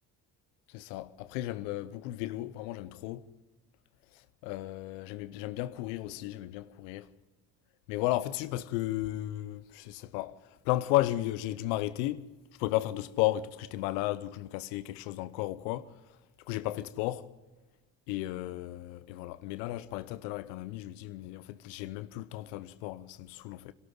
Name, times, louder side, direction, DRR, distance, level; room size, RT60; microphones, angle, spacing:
voice 1, 0.7-3.2 4.4-7.1 7.9-10.4 10.7-12.3 12.6-15.9 16.5-17.3 18.1-23.7, left 16 dB, 85° left, 0.9 m, -34 dB
26.5 x 13.0 x 9.4 m
hypercardioid pair, 50°, 49 cm